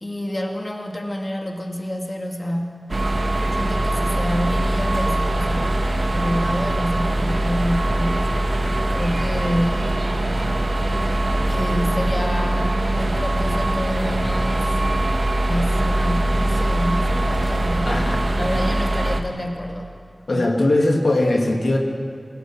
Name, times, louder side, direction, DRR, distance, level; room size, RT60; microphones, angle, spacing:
voice 1, 0.0-3.0 3.5-8.3 8.9-10.0 11.5-14.8 15.5-19.9 20.3-20.5, equal, 35° left, 1 dB, 2.2 m, -28 dB
sound 1, 2.9-19.2, right 1 dB, 50° right, 1.7 m, -22 dB
voice 2, 17.9-18.2 20.3-21.8, left 2 dB, 75° left, 1 dB, 2.6 m, -19 dB
27.0 x 17.5 x 6.2 m, 2.3 s
wide cardioid pair, 75°, 0 cm